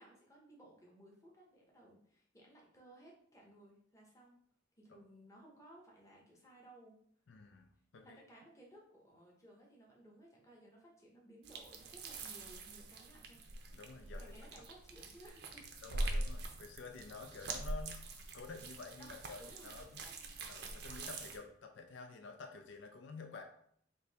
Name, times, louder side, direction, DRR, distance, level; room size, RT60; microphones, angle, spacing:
voice 1, 0.0-4.4 4.8-7.0 8.0-13.4 14.2-15.7 19.0-20.4, right 1 dB, 15° left, -2 dB, 0.8 m, -60 dB
voice 2, 7.3-8.2 13.7-14.3 15.8-18.0 18.3-20.0 20.5-23.4, left 4 dB, 70° left, 4 dB, 0.4 m, -50 dB
sound 1, 11.4-21.4, right 2 dB, 55° right, 0.5 m, -43 dB
3.7 x 2.7 x 4.0 m, 0.66 s
head